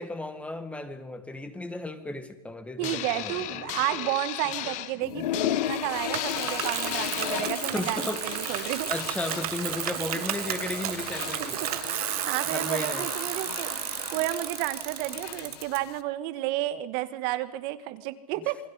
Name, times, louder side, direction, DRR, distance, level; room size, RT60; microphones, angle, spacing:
voice 1, 0.0-3.4 4.6-4.7 5.2-5.3 7.4-11.6 12.4-13.1 18.4-18.5, left 2 dB, 5° left, 9 dB, 2.0 m, -35 dB
sound 1, 2.8-7.5, left 14 dB, 40° left, 1.0 m, -36 dB
voice 2, 2.8-8.9 10.1-10.2 11.9-12.0 12.3-18.6, right 15 dB, 45° right, 12 dB, 1.6 m, -31 dB
sound 2, 5.0-16.0, left 12 dB, 75° left, 1.2 m, -35 dB
Bicycle, 6.1-15.8, right 14 dB, 65° right, 1.6 m, -33 dB
28.5 x 21.5 x 5.7 m, 1.0 s
hypercardioid pair, 130°, 20 cm